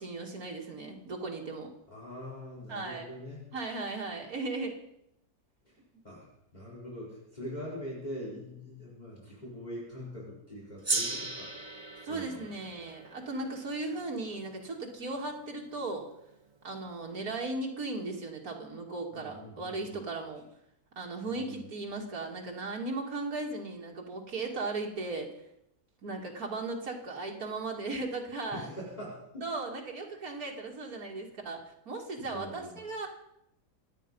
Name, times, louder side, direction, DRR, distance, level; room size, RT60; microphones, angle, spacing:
voice 1, 0.0-1.7 2.7-3.0 3.5-4.8 12.0-16.1 16.6-20.4 21.0-25.3 26.0-28.7 29.4-33.1, right 3 dB, 75° right, 1 dB, 2.8 m, -37 dB
voice 2, 1.9-3.4 5.6-5.7 6.0-11.5 12.1-12.5 19.1-20.0 21.2-21.7 28.5-29.5 32.2-32.8, equal, 25° left, -6 dB, 4.8 m, -43 dB
Gong, 10.8-15.6, right 3 dB, 20° right, 1.0 m, -37 dB
26.0 x 9.3 x 5.4 m, 0.80 s
omnidirectional pair, 1.6 m